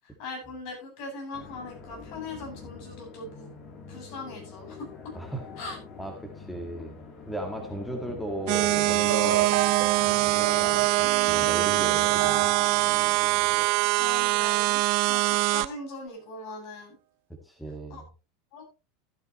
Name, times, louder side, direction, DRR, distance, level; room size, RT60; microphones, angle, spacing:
voice 1, 0.0-3.5 3.9-5.1 5.6-5.8 14.0-17.0 17.9-18.0 18.5-18.6, left 2 dB, 60° left, 2 dB, 7.9 m, -40 dB
sound 1, 1.3-13.7, left 5 dB, 40° left, 3.2 m, -44 dB
voice 2, 5.1-5.5 6.0-7.0 7.3-9.5 10.0-12.5 17.4-18.1, right 1 dB, 5° left, 3 dB, 1.9 m, -36 dB
sound 2, 8.5-15.7, right 21 dB, 60° right, 0.7 m, -23 dB
sound 3, 8.9-14.2, right 12 dB, 85° right, 1.3 m, -33 dB
14.5 x 9.7 x 3.1 m, 0.30 s
supercardioid pair, 130°, 0 cm